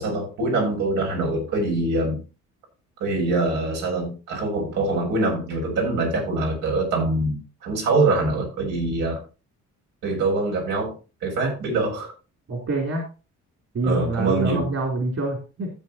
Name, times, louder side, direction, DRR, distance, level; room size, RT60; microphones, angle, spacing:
voice 1, 0.0-2.2 3.0-9.2 10.0-10.9 11.2-12.1 13.8-14.7, right 2 dB, 90° right, 7.3 m, -24 dB
voice 2, 12.5-13.0 13.7-15.7, right 2 dB, 55° right, 3.8 m, -26 dB
15.0 x 8.0 x 3.1 m
cardioid pair, 90°, 30 cm